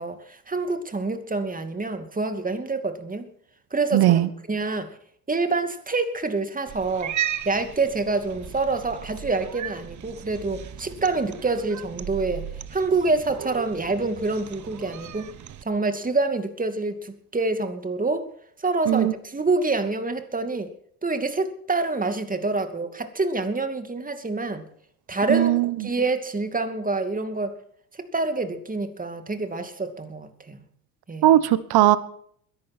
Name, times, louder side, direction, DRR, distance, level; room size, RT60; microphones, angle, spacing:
voice 1, 0.0-3.3 3.7-4.2 4.5-4.9 5.3-7.1 7.5-15.3 15.6-18.3 18.6-20.7 21.0-24.6 25.1-27.6 28.1-30.6 31.1-31.3, right 3 dB, 20° right, 8 dB, 2.5 m, -27 dB
voice 2, 3.9-4.3 18.9-19.1 25.3-25.9 31.2-32.0, right 13 dB, 55° right, 16 dB, 1.3 m, -18 dB
Cat, 6.7-15.6, right 10 dB, 40° right, 1.1 m, -36 dB
22.0 x 11.5 x 4.4 m, 0.65 s
hypercardioid pair, 60°, 45 cm